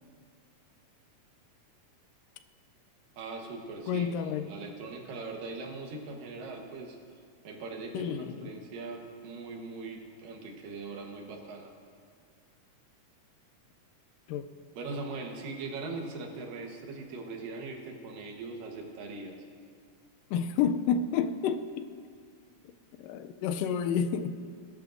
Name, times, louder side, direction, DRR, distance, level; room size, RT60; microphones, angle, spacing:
voice 1, 3.2-7.0 7.4-11.7 14.8-19.4, right 3 dB, 85° right, 2 dB, 2.9 m, -40 dB
voice 2, 3.9-4.5 7.9-8.5 14.3-14.4 20.3-21.9 23.0-24.4, left 7 dB, 85° left, 10 dB, 2.2 m, -30 dB
20.5 x 11.0 x 2.6 m, 2.1 s
omnidirectional pair, 3.8 m